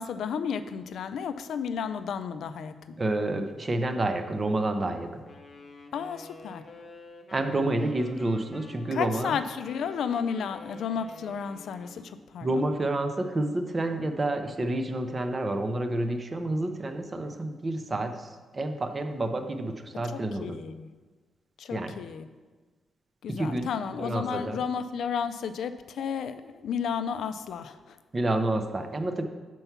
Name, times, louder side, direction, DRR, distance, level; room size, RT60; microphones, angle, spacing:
voice 1, 0.0-3.0 5.9-6.6 8.9-12.7 20.1-20.9 21.6-22.3 23.2-28.0, left 7 dB, 65° left, 11 dB, 0.4 m, -33 dB
voice 2, 3.0-5.2 7.3-9.4 12.4-20.6 21.7-22.0 23.3-23.7 24.0-24.6 28.1-29.2, right 2 dB, 25° right, 7 dB, 0.5 m, -29 dB
Wind instrument woodwind instrument, 5.3-12.2, left 3 dB, 35° left, 0.7 m, -48 dB
6.8 x 4.5 x 5.8 m, 1.3 s
wide cardioid pair, 165°, 0 cm